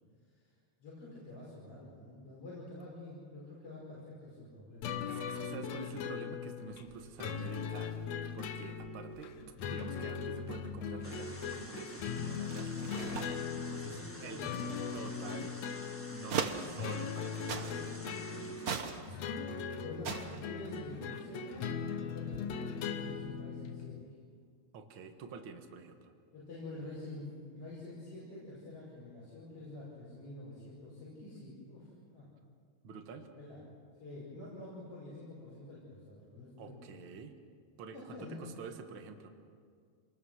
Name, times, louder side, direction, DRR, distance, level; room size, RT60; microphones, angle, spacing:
voice 1, 0.8-4.9 9.4-9.7 13.9-15.4 19.8-24.1 26.3-32.3 33.3-33.6 34.0-37.0 37.9-38.4, left 2 dB, 50° left, -7 dB, 6.8 m, -48 dB
sound 1, 4.8-24.0, left 6 dB, 70° left, 2.2 m, -39 dB
voice 2, 5.1-8.0 8.3-9.3 9.7-14.4 14.9-15.5 16.1-19.2 24.7-26.1 32.8-33.3 36.6-37.4 37.8-39.3, right 5 dB, 50° right, 5 dB, 2.0 m, -48 dB
sound 2, 6.7-17.2 17.5-18.1 18.5-19.6 19.9-21.8 22.1-23.4, right 6 dB, 65° right, 0.9 m, -43 dB
sound 3, 11.0-19.0, equal, 10° left, 0.6 m, -50 dB
27.5 x 20.5 x 6.5 m, 2.1 s
omnidirectional pair, 3.3 m